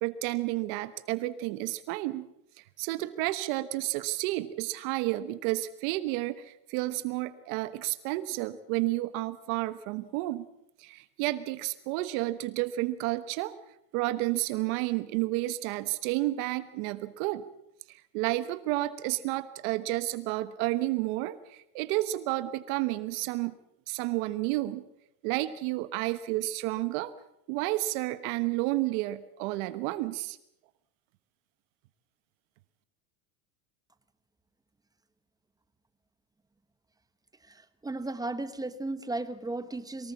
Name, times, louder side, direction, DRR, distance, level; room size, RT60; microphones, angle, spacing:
voice 1, 0.0-2.3 2.8-10.4 10.8-13.5 13.9-17.4 17.9-23.5 23.9-24.8 25.2-27.1 27.5-30.4, right 17 dB, 70° right, 13 dB, 1.3 m, -31 dB
voice 2, 37.5-40.1, right 2 dB, 10° right, 12 dB, 1.0 m, -35 dB
23.5 x 19.0 x 7.2 m, 0.78 s
cardioid pair, 150°, 45 cm